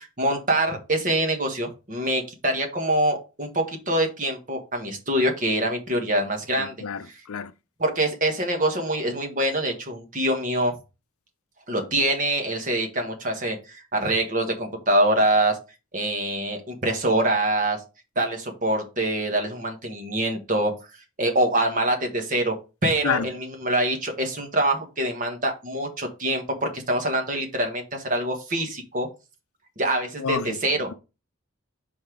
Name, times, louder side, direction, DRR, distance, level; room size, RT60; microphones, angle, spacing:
voice 1, 0.0-6.7 7.8-10.8 11.7-15.6 15.9-17.8 18.1-20.7 21.2-29.1 29.8-30.9, right 1 dB, 35° right, 1.5 m, -25 dB
voice 2, 6.6-7.5 23.0-23.3 30.2-30.6 30.9-31.0, left 6 dB, 75° left, 0.5 m, -29 dB
5.7 x 4.3 x 4.7 m
head